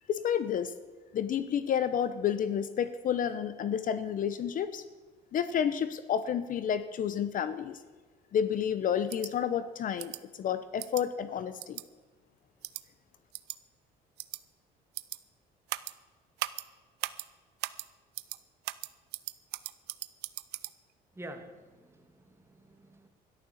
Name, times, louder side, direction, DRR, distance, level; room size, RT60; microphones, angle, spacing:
voice 1, 0.1-0.7 1.1-4.8 5.3-7.8 8.3-10.1 10.4-11.8, left 8 dB, 55° left, 13 dB, 0.8 m, -30 dB
sound 1, 9.1-9.3 10.0-10.2 10.8-11.0 11.6-11.8 12.6-12.8 13.3-13.6 14.2-14.4 14.9-15.2 15.7-15.9 16.4-16.6 17.0-17.3 17.6-17.9 18.1-18.4 18.6-20.7, right 18 dB, 85° right, 0.6 m, -37 dB
voice 2, 21.1-23.1, right 1 dB, 15° right, 6 dB, 1.9 m, -48 dB
13.5 x 11.5 x 7.3 m, 1.4 s
cardioid pair, 110°, 17 cm